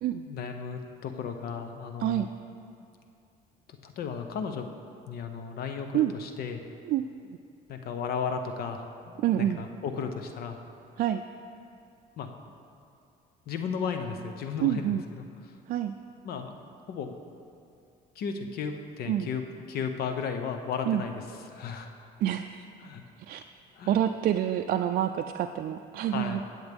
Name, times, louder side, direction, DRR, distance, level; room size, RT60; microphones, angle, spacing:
voice 1, 0.3-2.3 3.8-4.7 5.1-6.7 7.7-10.6 12.2-12.3 13.5-15.6 16.2-16.5 16.9-17.2 18.1-22.1 22.8-23.0 23.7-24.0 26.1-26.4, left 6 dB, 65° left, 6 dB, 0.7 m, -35 dB
voice 2, 9.2-9.6 11.0-11.2 14.6-15.0 15.7-15.9 19.1-19.3 20.9-21.0 22.2-22.6 23.3-23.4 23.9-26.4, right 11 dB, 60° right, 6 dB, 0.4 m, -27 dB
16.5 x 8.0 x 3.5 m, 2.5 s
cardioid pair, 110°, 17 cm